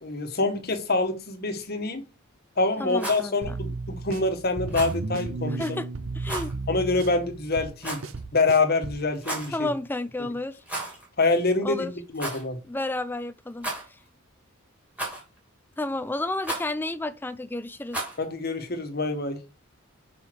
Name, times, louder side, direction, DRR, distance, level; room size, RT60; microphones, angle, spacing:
voice 1, 0.0-2.0 2.6-5.8 6.7-8.0 8.3-9.7 11.2-12.6 18.2-19.4, left 3 dB, 45° left, 1.3 m, -26 dB
voice 2, 2.8-3.6 5.6-5.9 6.1-6.6 9.5-10.6 11.6-11.9 12.7-14.0 15.8-18.0, left 2 dB, 10° left, 0.4 m, -31 dB
Rattle, 2.9-3.3 4.7-5.0 6.2-6.5 7.8-8.2 9.1-9.5 10.6-11.1 11.3-11.4 12.1-12.4 13.6-14.1 15.0-15.4 16.4-16.7 17.9-18.2, right 1 dB, 5° right, 2.7 m, -33 dB
sound 1, 3.4-9.1, right 3 dB, 65° right, 0.7 m, -34 dB
6.0 x 5.5 x 4.6 m
head